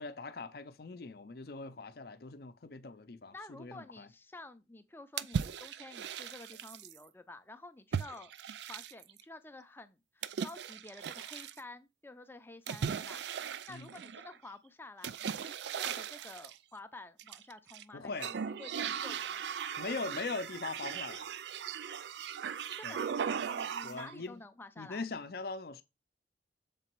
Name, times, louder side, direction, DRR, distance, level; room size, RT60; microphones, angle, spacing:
voice 1, 0.0-4.1 13.7-13.9 17.9-18.3 19.8-21.3 22.8-23.0 23.8-24.4 24.8-25.8, left 3 dB, 55° left, 0.6 m, -41 dB
voice 2, 3.3-8.3 8.7-19.4 22.7-25.0, left 2 dB, 10° left, 0.5 m, -51 dB
sound 1, 5.2-7.0 7.9-9.2 10.2-11.6 12.7-14.4 15.0-16.6 17.2-17.8 18.1-24.1, right 7 dB, 75° right, 0.4 m, -38 dB
6.8 x 3.9 x 4.5 m
head